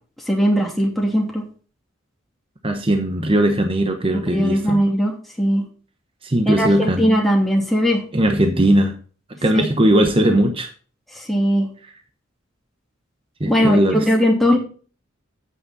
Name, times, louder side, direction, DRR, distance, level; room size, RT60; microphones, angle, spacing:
voice 1, 0.3-1.4 4.1-5.6 6.5-8.0 9.5-9.6 11.3-11.7 13.5-14.6, equal, ahead, -1 dB, 2.7 m, -19 dB
voice 2, 2.6-4.8 6.2-7.1 8.1-9.0 9.3-10.7 13.4-14.1, right 1 dB, 25° right, 5 dB, 1.0 m, -18 dB
9.2 x 8.7 x 4.0 m, 0.39 s
head